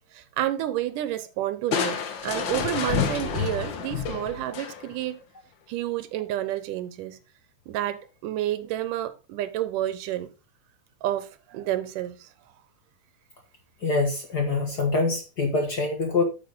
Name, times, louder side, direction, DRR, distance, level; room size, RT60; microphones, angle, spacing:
voice 1, 0.1-5.2 5.7-7.2 7.7-10.3 11.0-12.3, right 13 dB, 80° right, 2.3 m, -30 dB
Crushing, 1.7-5.1, left 7 dB, 90° left, 1.0 m, -29 dB
voice 2, 13.8-16.2, left 3 dB, 55° left, 1.1 m, -25 dB
8.9 x 7.4 x 3.9 m
omnidirectional pair, 3.8 m